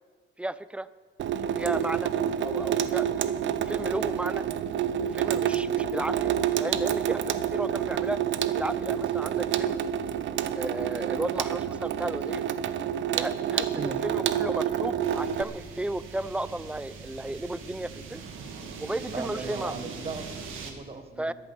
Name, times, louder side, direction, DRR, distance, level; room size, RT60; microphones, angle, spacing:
voice 1, 0.4-0.9 1.5-2.1 2.4-4.4 5.1-8.2 8.6-9.8 10.5-12.4 13.2-18.2 18.8-19.8 21.2-21.3, right 1 dB, 5° right, 17 dB, 0.5 m, -34 dB
Water tap faucet / Sink (filling or washing), 1.2-15.4, right 9 dB, 70° right, 0.8 m, -28 dB
sound 1, 15.0-20.7, right 5 dB, 90° right, 1.7 m, -41 dB
voice 2, 19.1-21.3, right 4 dB, 30° right, 8 dB, 1.5 m, -38 dB
14.0 x 11.0 x 6.0 m, 1.5 s
cardioid pair, 90°, 20 cm